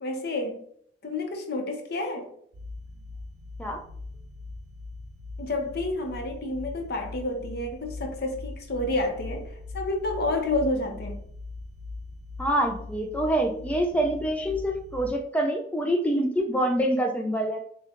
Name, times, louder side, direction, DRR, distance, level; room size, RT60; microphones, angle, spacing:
voice 1, 0.0-0.6 1.0-2.3 5.4-11.2, left 2 dB, 60° left, 0.8 m, -29 dB
sound 1, 2.5-15.1, left 3 dB, 80° right, 0.5 m, -41 dB
voice 2, 12.4-17.6, right 1 dB, 10° left, 0.4 m, -26 dB
6.9 x 2.3 x 2.9 m
head